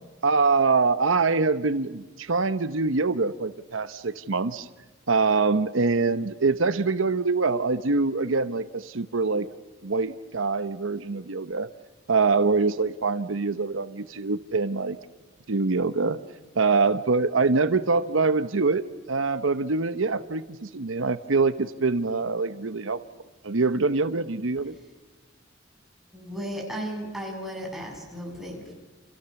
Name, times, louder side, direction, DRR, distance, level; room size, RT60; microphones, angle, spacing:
voice 1, 0.2-4.7 5.1-9.5 9.8-11.7 12.1-15.0 15.5-16.2 16.6-23.0 23.4-24.7, right 4 dB, 85° right, 12 dB, 0.9 m, -24 dB
voice 2, 26.1-28.7, equal, ahead, -1 dB, 7.5 m, -35 dB
29.0 x 28.5 x 7.1 m, 1.2 s
head